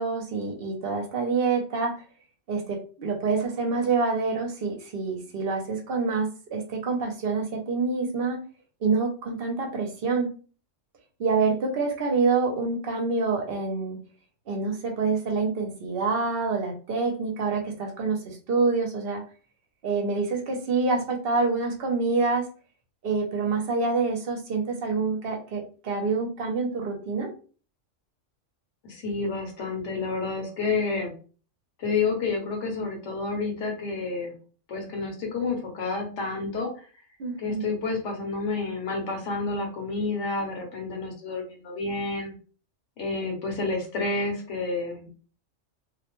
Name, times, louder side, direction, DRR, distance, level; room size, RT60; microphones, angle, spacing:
voice 1, 0.0-1.9 2.5-8.4 8.8-10.3 11.2-14.0 14.5-19.2 19.8-22.4 23.0-27.3 37.2-37.7, right 4 dB, 60° right, 2 dB, 0.7 m, -26 dB
voice 2, 28.8-31.1 31.8-34.3 34.7-36.8 37.4-42.3 43.0-45.1, left 3 dB, 70° left, 1 dB, 1.0 m, -29 dB
2.4 x 2.1 x 2.9 m, 0.38 s
omnidirectional pair, 1.3 m